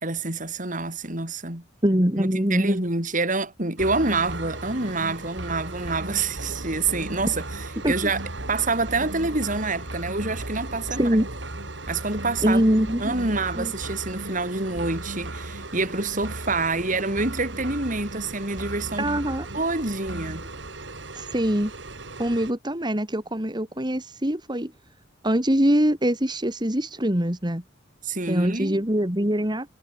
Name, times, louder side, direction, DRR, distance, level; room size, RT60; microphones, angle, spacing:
voice 1, 0.0-1.6 2.2-8.2 8.5-11.2 11.9-12.6 13.0-19.1 19.5-20.4 28.0-28.8, right 3 dB, 40° right, 5.7 m, -27 dB
voice 2, 1.8-2.8 7.8-7.9 11.0-11.2 12.4-13.1 13.5-13.7 19.0-19.5 21.1-21.7 22.2-24.7 25.2-27.6 28.3-29.8, equal, 25° right, 3.1 m, -23 dB
sound 1, 3.8-22.5, right 2 dB, 70° right, 3.7 m, -36 dB
head